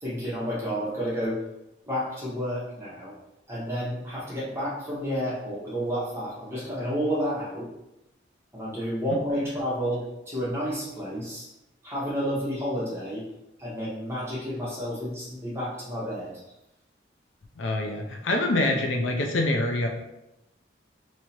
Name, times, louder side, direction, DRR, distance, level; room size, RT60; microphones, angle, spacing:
voice 1, 0.0-1.4 1.9-3.2 3.5-7.7 8.5-11.5 11.8-13.3 13.6-16.3, equal, 15° right, -7 dB, 1.1 m, -30 dB
voice 2, 17.6-19.9, left 2 dB, 80° left, 2 dB, 0.6 m, -25 dB
3.0 x 2.8 x 4.3 m, 0.91 s
head